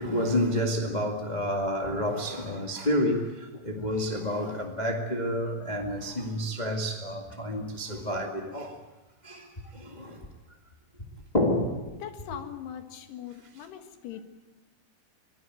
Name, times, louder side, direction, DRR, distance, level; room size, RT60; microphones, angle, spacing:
voice 1, 0.0-8.8 9.2-10.3 11.3-11.9, equal, 30° left, 0.8 m, -29 dB
voice 2, 11.9-14.2, left 10 dB, 75° left, 3.7 m, -41 dB
24.5 x 17.5 x 9.2 m
omnidirectional pair, 4.8 m